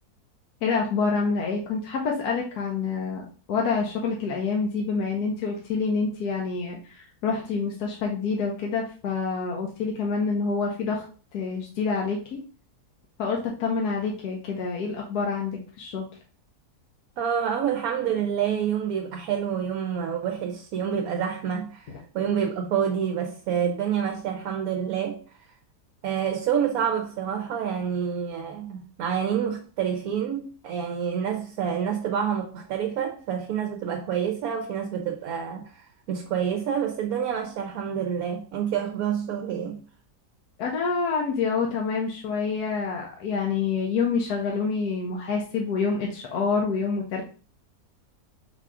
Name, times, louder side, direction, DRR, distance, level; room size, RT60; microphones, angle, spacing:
voice 1, 0.6-11.0 11.3-12.4 13.2-16.1 40.6-47.2, left 5 dB, 75° left, 1.3 m, -27 dB
voice 2, 17.2-25.2 26.0-39.8, right 8 dB, 70° right, 1.0 m, -28 dB
4.2 x 2.4 x 4.7 m
omnidirectional pair, 1.7 m